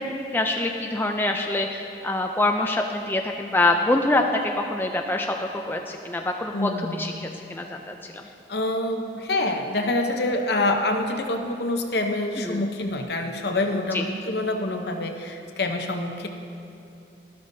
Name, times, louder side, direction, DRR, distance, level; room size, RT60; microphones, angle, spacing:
voice 1, 0.0-8.2 12.4-12.6 13.9-14.0, left 2 dB, 10° left, 3 dB, 0.3 m, -25 dB
voice 2, 6.5-7.1 8.5-16.3, left 2 dB, 60° left, 5 dB, 0.8 m, -26 dB
12.5 x 12.5 x 2.7 m, 2.7 s
head